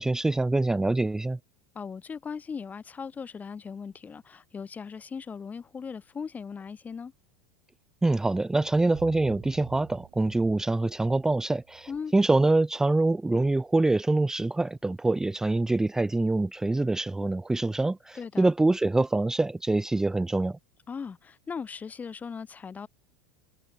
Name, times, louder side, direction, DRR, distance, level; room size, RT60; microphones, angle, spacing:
voice 1, 0.0-1.4 8.0-20.6, right 2 dB, 5° right, 0.5 m, -25 dB
voice 2, 1.7-7.1 11.9-12.1 18.1-18.5 20.9-22.9, left 6 dB, 20° left, 1.3 m, -38 dB
sound 1, 8.5-12.6, right 40 dB or more, 55° right, 5.0 m, -49 dB
hypercardioid pair, 80°, 7 cm